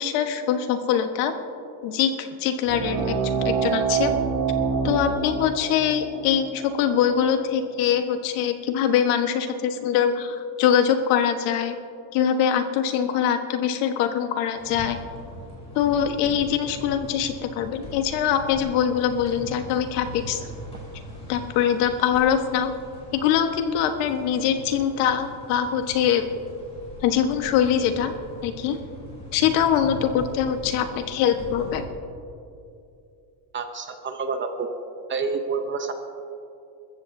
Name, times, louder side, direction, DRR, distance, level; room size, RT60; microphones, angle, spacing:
voice 1, 0.0-1.3 1.8-3.2 3.4-4.1 4.8-11.8 12.1-15.0 15.7-20.4 21.3-22.7 23.1-26.2 27.0-28.1 28.4-28.8 29.3-31.8, left 9 dB, 85° left, 6 dB, 1.4 m, -23 dB
sound 1, 2.6-7.8, right 5 dB, 65° right, 3.3 m, -26 dB
sound 2, 14.6-31.8, equal, 10° left, 3.6 m, -41 dB
voice 2, 33.5-34.7 35.1-35.9, right 4 dB, 25° right, 6 dB, 0.7 m, -28 dB
27.5 x 14.5 x 2.7 m, 2.6 s
cardioid pair, 180°, 49 cm